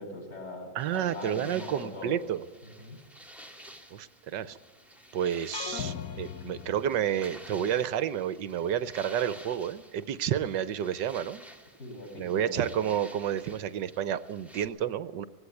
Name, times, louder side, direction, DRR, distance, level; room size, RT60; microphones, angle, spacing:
voice 1, 0.0-2.2 2.6-3.0 5.7-5.9 11.8-12.6, left 1 dB, 35° left, -2 dB, 6.9 m, -41 dB
voice 2, 0.7-2.4 3.9-4.6 5.1-11.4 12.2-15.2, right 9 dB, 70° right, 14 dB, 1.4 m, -30 dB
sound 1, 0.8-14.7, equal, ahead, 1.9 m, -51 dB
sound 2, 5.5-7.5, left 9 dB, 55° left, 1.2 m, -39 dB
19.0 x 16.5 x 8.4 m, 1.3 s
omnidirectional pair, 2.1 m